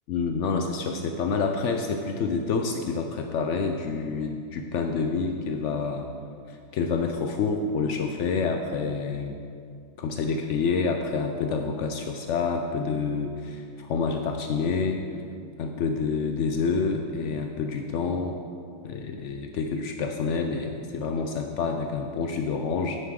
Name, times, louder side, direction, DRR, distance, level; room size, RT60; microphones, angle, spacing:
voice 1, 0.1-6.0 6.5-9.3 10.0-15.0 15.6-18.4 18.8-23.0, left 4 dB, 85° left, 4 dB, 0.6 m, -28 dB
9.5 x 9.3 x 3.7 m, 2.3 s
omnidirectional pair, 1.9 m